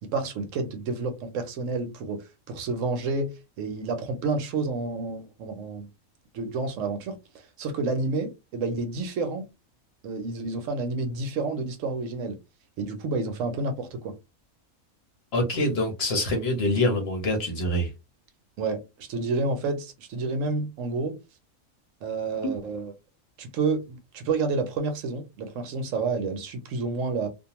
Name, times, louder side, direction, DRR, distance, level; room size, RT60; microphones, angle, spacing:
voice 1, 0.0-2.2 2.5-5.9 6.3-9.4 10.0-12.4 12.8-14.2 18.6-21.2 22.0-22.9 23.4-27.3, right 3 dB, 70° right, 0.9 m, -29 dB
voice 2, 15.3-17.9 22.4-22.5, left 1 dB, 55° left, 0.9 m, -25 dB
2.5 x 2.2 x 2.9 m
omnidirectional pair, 1.5 m